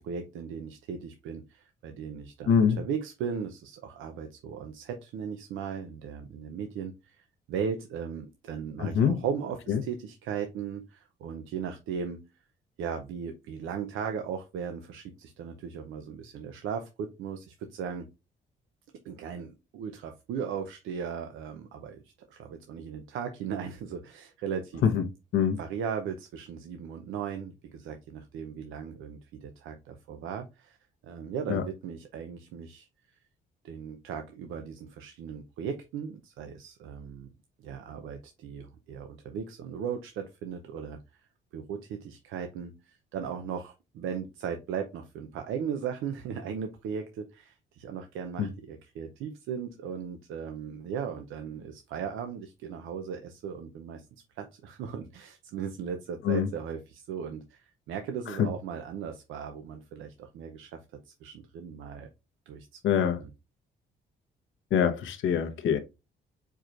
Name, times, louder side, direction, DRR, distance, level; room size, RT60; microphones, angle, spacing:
voice 1, 0.0-12.3 12.8-18.1 19.0-22.0 22.3-24.8 25.6-30.8 31.0-32.9 33.6-37.3 37.6-41.2 41.5-54.1 54.4-60.8 61.1-62.1 62.5-63.3, right 7 dB, 90° right, 0.7 m, -37 dB
voice 2, 2.5-2.8 8.8-9.2 9.7-9.8 24.8-25.0 25.3-25.6 31.5-31.6 48.4-48.5 56.2-56.5 58.4-58.5 62.8-63.2 64.7-65.8, left 7 dB, 80° left, 0.9 m, -24 dB
4.7 x 4.5 x 2.5 m
cardioid pair, 90°, 20 cm